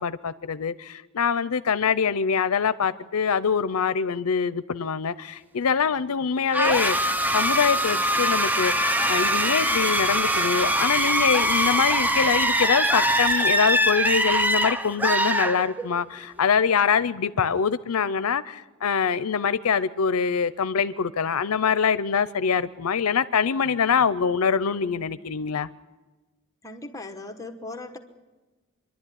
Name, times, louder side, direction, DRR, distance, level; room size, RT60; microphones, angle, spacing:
voice 1, 0.0-25.7, left 6 dB, 80° left, 0.6 m, -24 dB
sound 1, 6.5-16.1, equal, 10° right, 0.6 m, -23 dB
voice 2, 26.6-28.0, left 2 dB, 15° left, 1.1 m, -38 dB
25.5 x 11.5 x 10.0 m
head